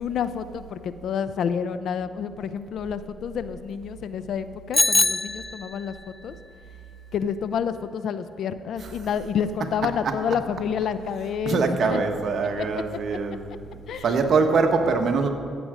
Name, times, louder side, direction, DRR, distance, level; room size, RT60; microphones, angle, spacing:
voice 1, 0.0-5.9 6.2-6.4 7.1-12.0 12.6-12.8 13.1-13.2 13.9-14.1, left 7 dB, 65° left, 13 dB, 0.5 m, -29 dB
Bicycle bell, 4.7-6.0, left 3 dB, 20° left, 0.3 m, -23 dB
voice 2, 11.4-13.4 14.0-15.3, right 4 dB, 55° right, 5 dB, 1.3 m, -23 dB
15.5 x 7.7 x 5.0 m, 2.3 s
cardioid pair, 80°, 0 cm